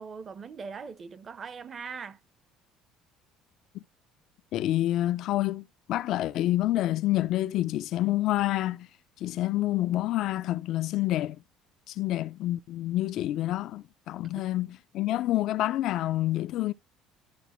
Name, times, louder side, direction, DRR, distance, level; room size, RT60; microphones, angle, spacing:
voice 1, 0.0-2.2, right 5 dB, 30° right, 0.7 m, -40 dB
voice 2, 4.5-8.9 9.2-11.4 11.9-16.7, left 15 dB, 60° left, 0.4 m, -28 dB
12.0 x 5.7 x 3.0 m
cardioid pair, 135°, 0 cm